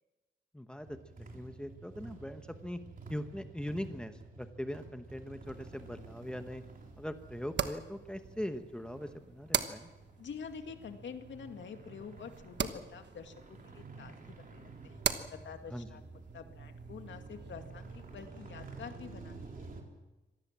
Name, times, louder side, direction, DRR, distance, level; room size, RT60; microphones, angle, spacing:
voice 1, 0.5-2.8 3.1-6.6 7.0-9.9 15.7-15.9, equal, 5° left, 7 dB, 1.1 m, -41 dB
sound 1, 0.8-19.8, right 3 dB, 45° right, 3.6 m, -51 dB
sound 2, 5.4-18.3, right 7 dB, 65° right, 1.2 m, -42 dB
voice 2, 10.2-13.3 13.6-16.0 16.3-19.7, left 6 dB, 75° left, 6 dB, 2.3 m, -47 dB
25.5 x 19.0 x 7.5 m, 1.1 s
wide cardioid pair, 145°, 19 cm